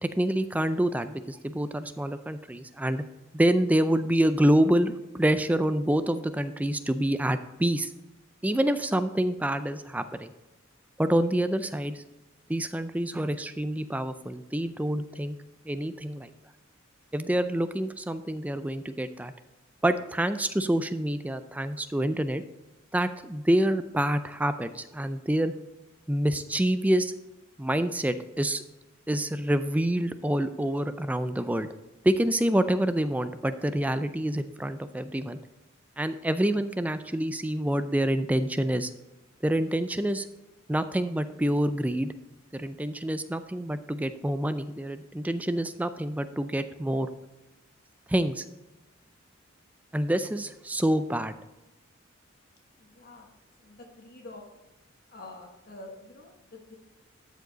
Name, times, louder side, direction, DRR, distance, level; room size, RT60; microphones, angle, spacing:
voice 1, 0.0-3.0 3.3-7.9 8.4-10.3 11.0-12.0 12.5-15.4 15.7-16.3 17.1-19.3 19.8-22.4 22.9-25.5 26.1-27.1 27.6-28.6 29.1-31.7 32.0-35.4 36.0-38.9 39.4-40.3 40.7-42.1 42.5-47.1 48.1-48.5 49.9-51.3, right 1 dB, 5° right, 11 dB, 0.3 m, -27 dB
voice 2, 52.8-53.3 53.6-54.4 55.1-56.7, left 2 dB, 45° left, 1 dB, 1.2 m, -47 dB
12.5 x 4.9 x 3.9 m, 1.0 s
head